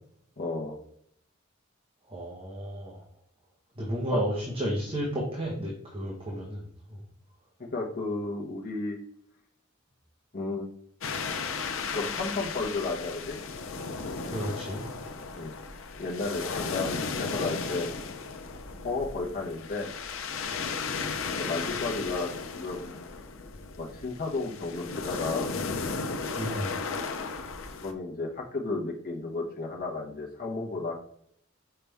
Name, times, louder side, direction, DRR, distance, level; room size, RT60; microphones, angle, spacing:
voice 1, 0.4-0.8 4.1-4.2 7.7-9.0 10.3-10.7 11.9-13.4 15.4-15.5 15.9-17.9 18.8-19.9 21.4-22.9 23.8-25.5 27.8-30.9, left 3 dB, 45° left, -1 dB, 1.1 m, -33 dB
voice 2, 2.1-3.0 3.8-6.6 6.9-7.0 14.3-14.8 26.4-26.8, equal, 25° right, -3 dB, 1.2 m, -32 dB
sound 1, 11.0-27.9, left 4 dB, 70° left, 0.7 m, -35 dB
5.8 x 5.1 x 3.5 m, 0.69 s
head